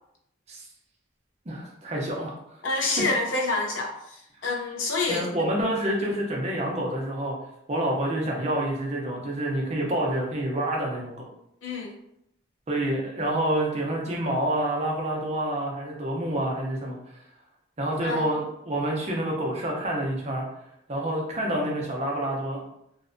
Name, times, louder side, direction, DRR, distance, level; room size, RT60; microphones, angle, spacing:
voice 1, 1.5-2.3 5.1-7.4 7.7-11.2 12.7-17.0 17.8-20.4 20.9-22.6, right 1 dB, 35° right, -2 dB, 0.5 m, -28 dB
voice 2, 2.6-5.5 6.0-6.1 11.6-11.9 18.0-18.3, left 3 dB, 75° left, 1 dB, 0.5 m, -28 dB
2.5 x 2.1 x 2.5 m, 0.78 s
head